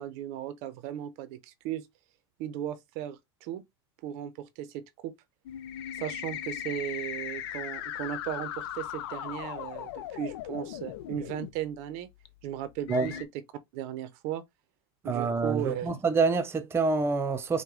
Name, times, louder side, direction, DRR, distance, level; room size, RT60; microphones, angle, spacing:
voice 1, 0.0-1.9 2.4-3.6 4.0-5.1 5.9-12.1 12.4-13.4 13.7-14.4 15.0-16.0, right 11 dB, 55° right, 0.6 m, -36 dB
sound 1, 5.5-11.5 12.3-12.4 12.9-13.2, left 11 dB, 70° left, 0.5 m, -38 dB
voice 2, 15.1-17.6, right 4 dB, 20° right, 0.6 m, -27 dB
4.7 x 2.2 x 3.6 m
hypercardioid pair, 100°, 14 cm